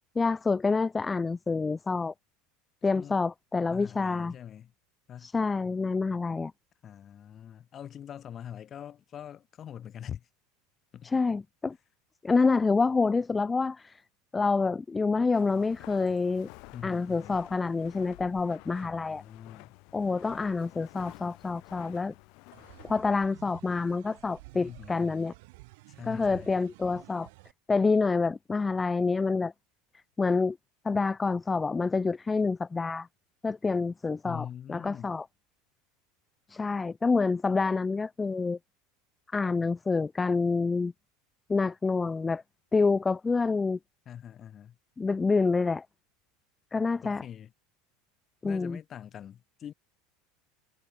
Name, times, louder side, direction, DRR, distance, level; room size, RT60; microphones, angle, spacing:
voice 1, 0.2-2.1 2.8-4.3 5.2-6.5 11.0-11.8 12.2-14.0 14.3-16.5 16.8-19.2 19.9-22.1 22.8-25.3 26.1-27.3 27.7-29.5 30.2-30.6 30.8-33.1 33.4-35.2 36.5-38.6 39.3-40.9 41.5-42.4 42.7-43.8 45.0-45.9 46.7-47.2 48.4-48.8, left 4 dB, 10° left, 0.4 m, -27 dB
voice 2, 3.7-4.7 5.1-5.3 6.8-10.3 10.9-11.1 16.7-17.4 18.8-19.7 24.6-25.3 25.9-26.6 34.2-35.1 44.1-44.8 47.0-47.5 48.4-49.7, left 9 dB, 30° left, 5.8 m, -44 dB
Walk footsteps, 15.3-23.0, left 32 dB, 55° left, 5.7 m, -51 dB
sound 1, 22.5-27.5, right 25 dB, 70° right, 2.3 m, -51 dB
supercardioid pair, 155°, 0 cm